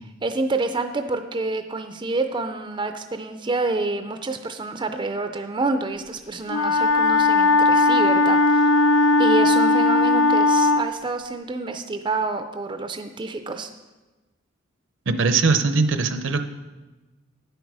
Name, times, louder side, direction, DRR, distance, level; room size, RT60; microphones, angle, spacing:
voice 1, 0.2-8.7 9.2-13.7, right 3 dB, 25° right, 7 dB, 0.5 m, -28 dB
Wind instrument woodwind instrument, 6.5-10.9, left 2 dB, 85° left, 0.6 m, -18 dB
voice 2, 15.1-16.4, right 4 dB, 65° right, 9 dB, 0.7 m, -20 dB
10.0 x 8.0 x 4.8 m, 1.2 s
head